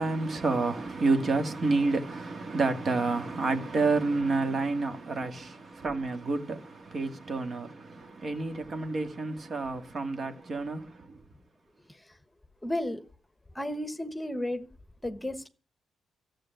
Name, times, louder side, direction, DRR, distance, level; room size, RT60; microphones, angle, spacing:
voice 1, 0.0-11.2, right 3 dB, 45° right, 2.1 m, -29 dB
voice 2, 12.6-13.0 13.5-14.7 15.0-15.5, left 1 dB, 10° left, 1.3 m, -33 dB
14.0 x 7.6 x 9.2 m
cardioid pair, 110°, 0 cm